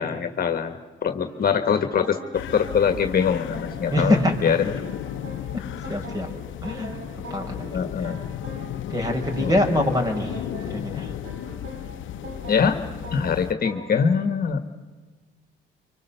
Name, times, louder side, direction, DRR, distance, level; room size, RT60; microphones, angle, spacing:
voice 1, 0.0-4.8 7.7-8.2 9.4-9.7 12.5-12.8 13.1-14.6, left 6 dB, 50° left, 7 dB, 1.6 m, -23 dB
sound 1, 1.2-14.0, right 1 dB, 75° right, 5.6 m, -42 dB
sound 2, 2.3-13.5, left 11 dB, 75° left, 0.8 m, -35 dB
voice 2, 3.9-4.4 5.5-5.6 5.9-6.3 6.6-7.7 8.0-8.1 8.9-11.1, left 1 dB, 20° right, 4 dB, 5.2 m, -25 dB
25.5 x 25.5 x 7.0 m, 1.4 s
cardioid pair, 90°, 20 cm